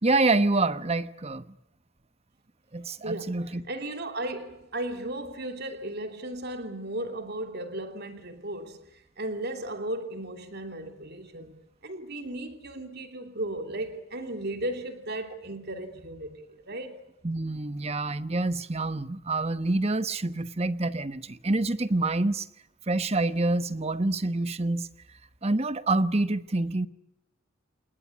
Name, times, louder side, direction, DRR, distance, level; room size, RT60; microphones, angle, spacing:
voice 1, 0.0-1.4 2.7-3.6 17.2-22.5 22.9-24.9 25.4-26.9, right 2 dB, 30° right, 1.1 m, -27 dB
voice 2, 3.0-11.6 11.8-17.0, right 1 dB, 50° right, 2.9 m, -35 dB
29.0 x 19.0 x 8.5 m
head